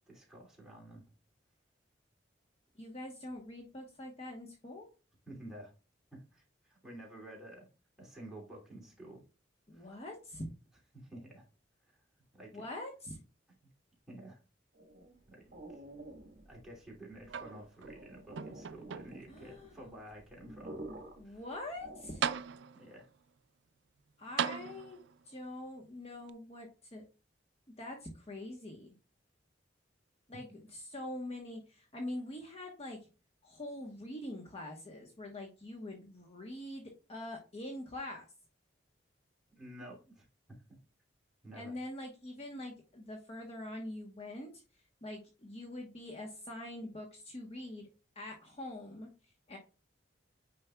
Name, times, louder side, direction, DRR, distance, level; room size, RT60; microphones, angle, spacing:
voice 1, 0.1-1.0 5.3-5.7 6.1-7.7 8.0-9.2 9.7-10.0 10.9-11.5 11.9-12.0 12.3-12.6 14.1-14.4 15.3-15.8 16.4-20.8 21.2-21.4 22.7-23.1 24.6-24.7 39.6-40.3 41.4-41.7, right 1 dB, ahead, -3 dB, 2.7 m, -51 dB
voice 2, 2.7-4.9 9.7-10.5 12.5-13.2 19.3-19.7 21.2-22.2 24.2-25.0 25.2-27.0 27.8-28.9 30.3-33.0 33.4-38.3 41.5-44.5 45.0-47.9 48.1-49.6, left 1 dB, 35° left, 1 dB, 1.2 m, -44 dB
sound 1, 14.7-22.6, right 1 dB, 50° right, 1.4 m, -50 dB
sound 2, 17.3-18.0 18.4-19.4 20.1-20.2 21.7-21.8 22.2-23.0 24.4-25.2 26.3-26.4, right 7 dB, 65° right, 0.4 m, -37 dB
9.1 x 5.2 x 2.3 m, 0.33 s
head